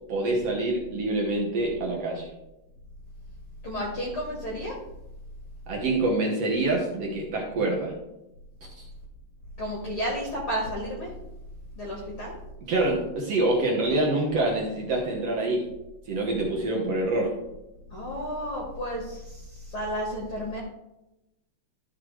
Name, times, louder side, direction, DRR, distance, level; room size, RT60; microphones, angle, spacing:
voice 1, 0.1-2.3 5.7-7.9 8.6-8.8 12.6-15.7 16.1-17.3, right 2 dB, 85° right, -2 dB, 1.4 m, -26 dB
voice 2, 3.6-4.7 9.6-11.1 11.8-12.3 17.9-19.4 19.7-20.6, equal, 60° left, -3 dB, 1.4 m, -32 dB
13.0 x 5.8 x 3.2 m, 0.93 s
omnidirectional pair, 5.0 m